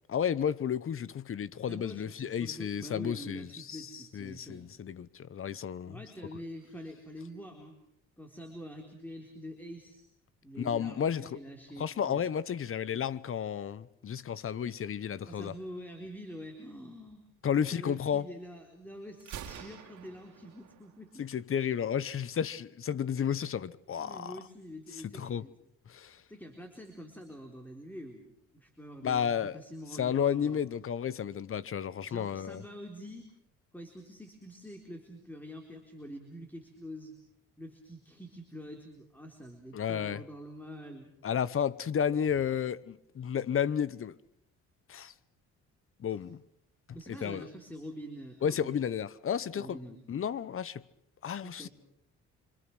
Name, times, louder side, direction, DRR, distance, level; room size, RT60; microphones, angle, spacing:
voice 1, 0.1-6.0 10.6-11.4 11.8-15.5 17.4-18.2 21.2-24.4 25.2-25.4 25.9-26.2 29.0-29.6 30.0-32.6 39.7-40.2 41.2-44.2 44.9-45.1 46.0-46.4 47.1-47.5 48.4-49.8 50.1-50.8 51.2-51.7, left 8 dB, 45° left, 1.0 m, -32 dB
voice 2, 1.7-4.7 5.8-7.8 8.2-10.1 10.4-12.3 15.3-21.3 24.0-25.5 26.3-30.7 32.0-33.3 33.7-37.1 37.6-41.1 46.1-46.2 46.9-48.8 49.5-50.0 51.4-51.7, equal, 5° left, 4.0 m, -46 dB
Gunshot gunfire, 19.2-21.2, right 9 dB, 75° right, 2.7 m, -47 dB
26.0 x 26.0 x 6.2 m
cardioid pair, 90°, 30 cm